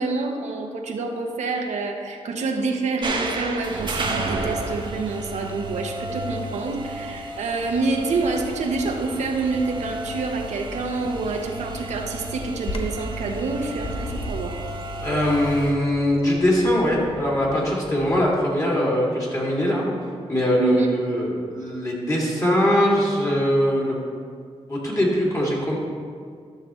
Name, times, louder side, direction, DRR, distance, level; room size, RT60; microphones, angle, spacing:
voice 1, 0.0-14.6 20.6-20.9, right 3 dB, 85° right, 2 dB, 0.9 m, -27 dB
sound 1, 3.0-15.7, right 2 dB, 45° right, 1.1 m, -32 dB
Bird vocalization bird call bird song, 12.6-18.3, left 2 dB, 50° left, 0.8 m, -37 dB
voice 2, 15.0-19.9 20.3-24.0 24.7-25.8, equal, 30° left, -5 dB, 2.4 m, -21 dB
12.0 x 6.7 x 3.1 m, 2.1 s
cardioid pair, 95°, 12 cm